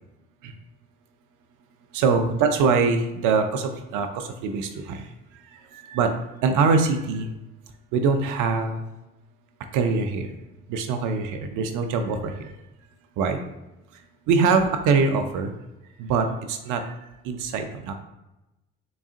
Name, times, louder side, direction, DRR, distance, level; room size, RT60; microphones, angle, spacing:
voice 1, 1.9-5.0 5.7-6.1 6.4-7.3 7.9-8.8 9.7-10.3 10.7-12.5 13.2-13.4 14.3-15.5 16.0-16.8 17.3-17.9, right 4 dB, 75° right, 6 dB, 0.7 m, -23 dB
4.2 x 3.5 x 2.5 m, 0.95 s
hypercardioid pair, 55°, 31 cm